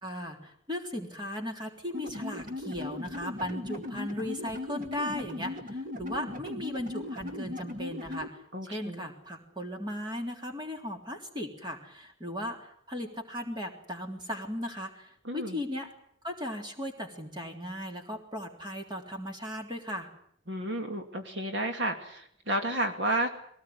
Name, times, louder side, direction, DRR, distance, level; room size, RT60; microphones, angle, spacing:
voice 1, 0.0-8.4 8.7-15.9 16.2-20.1, left 1 dB, 20° right, 2 dB, 3.4 m, -37 dB
sound 1, 1.9-8.3, left 2 dB, 40° right, 2.0 m, -38 dB
voice 2, 8.5-9.1 15.2-15.6 20.5-23.3, right 1 dB, 60° right, 5 dB, 2.4 m, -31 dB
23.0 x 18.5 x 9.5 m, 0.68 s
head